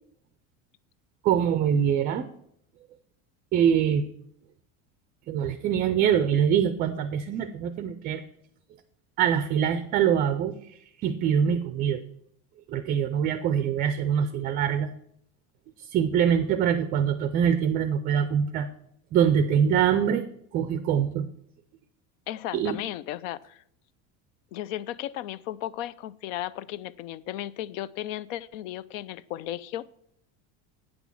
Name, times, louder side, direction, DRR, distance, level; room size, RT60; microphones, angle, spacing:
voice 1, 1.2-2.3 3.5-4.0 5.3-8.2 9.2-10.5 11.0-12.0 12.7-14.9 15.8-18.7 19.1-20.2 20.5-21.3 22.5-22.8, right 8 dB, 25° right, 11 dB, 0.3 m, -24 dB
voice 2, 22.3-23.6 24.5-29.9, left 13 dB, 90° left, 19 dB, 0.6 m, -35 dB
8.9 x 6.2 x 7.1 m, 0.69 s
cardioid pair, 165°, 38 cm